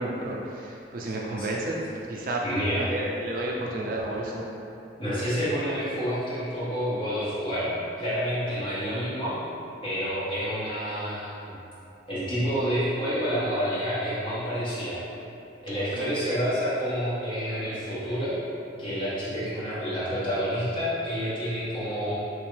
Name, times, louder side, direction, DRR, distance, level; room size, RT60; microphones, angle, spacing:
voice 1, 0.0-1.8 2.1-2.4 2.8-4.4 15.9-16.2, right 1 dB, 50° right, -2 dB, 0.3 m, -31 dB
voice 2, 1.0-1.5 2.4-2.9 3.5-3.6 5.0-7.7 8.0-9.3 9.8-11.5 12.1-15.0 15.6-18.4 18.8-22.1, equal, 25° left, -13 dB, 1.4 m, -29 dB
3.2 x 3.1 x 3.1 m, 2.8 s
head